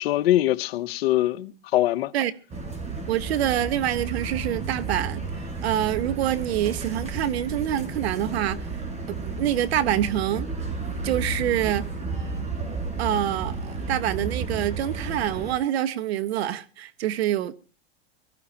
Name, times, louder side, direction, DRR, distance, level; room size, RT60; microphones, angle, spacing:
voice 1, 0.0-2.1, left 14 dB, 70° left, 1.0 m, -23 dB
sound 1, 2.5-15.5, right 4 dB, 20° right, 5.4 m, -32 dB
voice 2, 3.1-8.6 9.1-10.5 11.0-11.9 13.0-17.5, right 12 dB, 75° right, 1.5 m, -26 dB
23.5 x 14.0 x 2.9 m
supercardioid pair, 130°, 32 cm